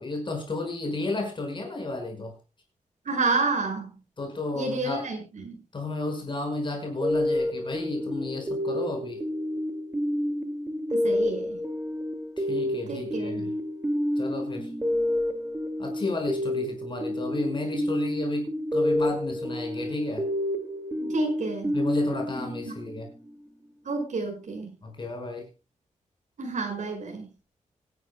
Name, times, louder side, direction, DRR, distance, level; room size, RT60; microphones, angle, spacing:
voice 1, 0.0-2.3 4.2-5.1 5.7-9.2 12.4-13.5 14.2-14.7 15.8-20.3 21.7-23.1 24.8-25.5, left 2 dB, 35° left, 3 dB, 5.4 m, -32 dB
voice 2, 3.1-3.9 4.5-5.2 5.4-5.6 10.9-11.6 12.9-13.4 21.0-21.7 22.7-22.8 23.9-24.7 26.4-27.3, right 3 dB, 65° right, 3 dB, 5.2 m, -29 dB
sound 1, 7.0-23.3, left 1 dB, 15° right, 2.3 m, -29 dB
25.5 x 11.0 x 2.2 m, 0.30 s
wide cardioid pair, 130°, 14 cm